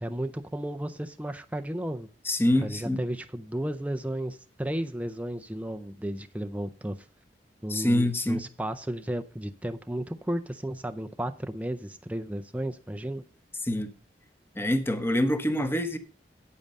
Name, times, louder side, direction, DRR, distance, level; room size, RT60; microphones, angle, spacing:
voice 1, 0.0-2.1 2.6-7.0 7.6-13.2, right 1 dB, 10° right, 0.5 m, -33 dB
voice 2, 2.2-3.0 7.7-8.4 13.6-13.9 14.6-16.0, left 1 dB, 15° left, 1.0 m, -25 dB
8.8 x 8.6 x 5.2 m
head